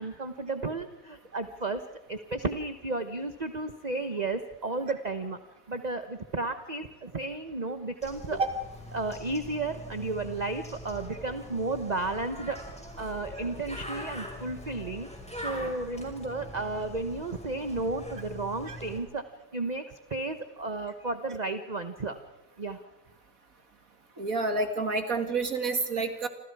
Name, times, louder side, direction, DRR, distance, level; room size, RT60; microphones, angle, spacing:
voice 1, 0.0-1.8 2.1-5.4 5.7-8.4 8.9-15.1 15.4-19.2 19.5-19.8 20.1-22.2 22.6-22.8, right 3 dB, 30° right, 8 dB, 1.1 m, -33 dB
Bird, 8.0-19.0, equal, 5° left, 5.3 m, -42 dB
voice 2, 24.2-26.3, right 3 dB, 60° right, 6 dB, 2.6 m, -28 dB
28.0 x 27.0 x 4.8 m, 0.97 s
omnidirectional pair, 1.7 m